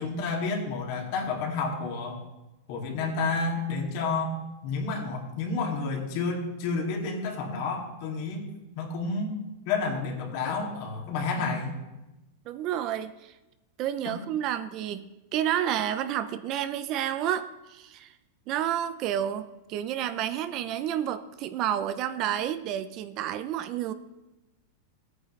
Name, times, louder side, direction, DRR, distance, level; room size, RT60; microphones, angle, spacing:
voice 1, 0.0-2.2 2.7-8.5 8.8-9.4 9.7-11.8, left 4 dB, 50° left, 0 dB, 2.4 m, -30 dB
voice 2, 12.5-13.3 13.8-15.0 15.3-18.1 18.5-19.4 19.7-23.9, right 10 dB, 35° right, 11 dB, 0.5 m, -30 dB
15.5 x 9.1 x 3.2 m, 1.0 s
supercardioid pair, 160°, 0 cm